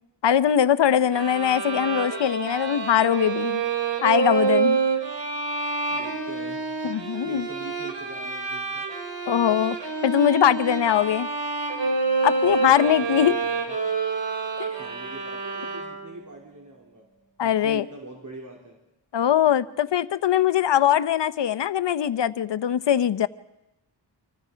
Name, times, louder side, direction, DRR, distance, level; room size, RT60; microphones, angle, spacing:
voice 1, 0.2-3.6 4.0-4.8 6.8-7.5 9.3-9.8 10.0-11.3 12.2-13.4 17.4-17.8 19.1-23.3, left 10 dB, 70° left, 14 dB, 0.9 m, -21 dB
sound 1, 1.1-16.2, right 4 dB, 70° right, 3.7 m, -28 dB
voice 2, 5.9-6.6 7.2-8.8 12.4-13.7 14.8-17.1 17.4-18.8, right 2 dB, 45° right, -1 dB, 3.4 m, -42 dB
29.5 x 26.0 x 5.1 m, 0.89 s
wide cardioid pair, 170°, 44 cm